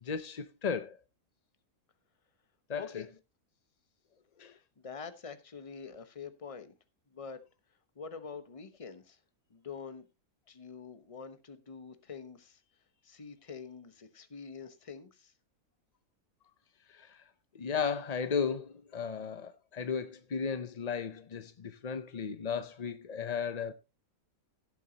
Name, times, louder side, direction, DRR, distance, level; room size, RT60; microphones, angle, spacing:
voice 1, 0.0-1.0 2.7-3.0 4.4-4.5 16.9-17.2 17.5-23.7, left 6 dB, 45° left, 0.5 m, -35 dB
voice 2, 2.7-3.1 4.4-6.7 7.1-7.4 7.9-9.2 9.5-10.0 10.5-12.6 13.0-15.3, left 5 dB, 25° left, 1.1 m, -46 dB
16.5 x 8.3 x 2.9 m
omnidirectional pair, 1.6 m